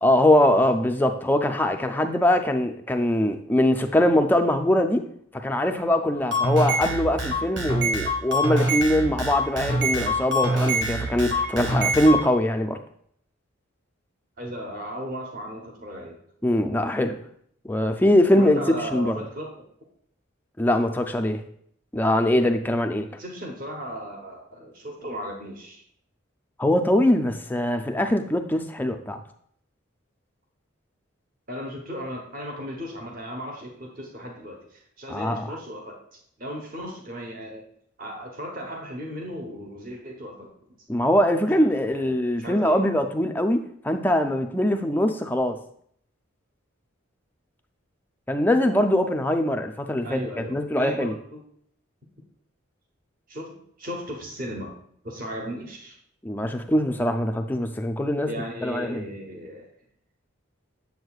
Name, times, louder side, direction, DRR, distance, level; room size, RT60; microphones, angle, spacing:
voice 1, 0.0-5.1 5.3-12.8 16.4-17.2 17.6-19.2 20.6-21.4 21.9-23.1 26.6-29.2 35.1-35.6 40.9-45.6 48.3-51.1 56.2-58.3 58.6-59.0, left 1 dB, 10° left, 6 dB, 0.3 m, -22 dB
sound 1, 6.2-12.2, equal, 60° right, 1.2 m, -25 dB
voice 2, 14.4-16.2 18.4-19.5 23.2-25.8 31.5-37.6 38.0-40.5 41.5-42.8 50.0-51.4 53.3-54.7 55.0-56.0 58.3-59.7, equal, 40° right, 1 dB, 1.0 m, -36 dB
7.9 x 7.1 x 2.4 m, 0.66 s
head